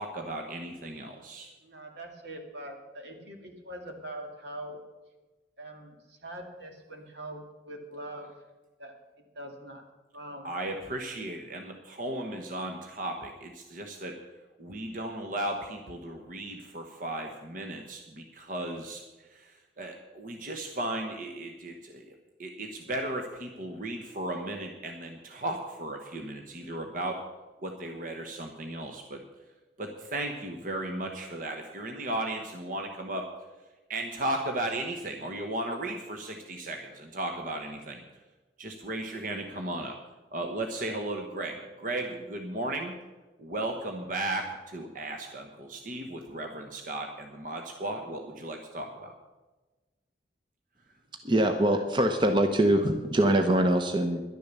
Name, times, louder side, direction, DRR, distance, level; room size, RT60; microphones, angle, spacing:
voice 1, 0.0-1.5 10.4-14.2 14.6-27.2 27.6-29.2 29.8-33.3 33.9-38.0 38.6-40.0 40.3-43.0 43.4-49.1, right 1 dB, 50° right, 3 dB, 1.1 m, -35 dB
voice 2, 1.6-4.8 5.6-8.3 8.8-9.8 10.1-10.5, right 1 dB, 80° right, 2 dB, 2.3 m, -43 dB
voice 3, 51.2-54.2, right 1 dB, 25° right, 6 dB, 0.8 m, -23 dB
11.0 x 10.5 x 6.8 m, 1.2 s
head